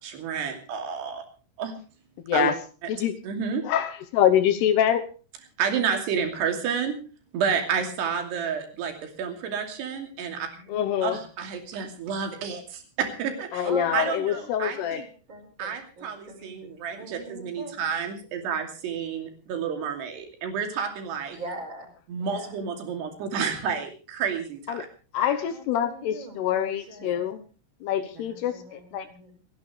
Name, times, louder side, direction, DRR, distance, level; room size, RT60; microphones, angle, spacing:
voice 1, 0.0-1.2 1.6-1.8 2.3-2.5 3.2-3.7 5.6-7.0 7.3-10.5 11.0-13.7 13.9-15.1 15.6-21.4 22.1-24.9 27.0-27.1, right 6 dB, 60° right, 5 dB, 4.4 m, -30 dB
voice 2, 2.2-2.6 2.9-3.1 3.6-5.0 10.7-11.2 13.5-15.0 24.7-24.9 25.1-27.4 27.8-29.1, left 10 dB, 80° left, 10 dB, 2.4 m, -25 dB
voice 3, 10.3-10.8 13.6-17.8 21.3-21.9 22.2-22.6 25.4-27.4 28.1-29.4, right 2 dB, 25° right, 2 dB, 5.0 m, -42 dB
28.5 x 11.0 x 3.2 m, 0.37 s
omnidirectional pair, 5.9 m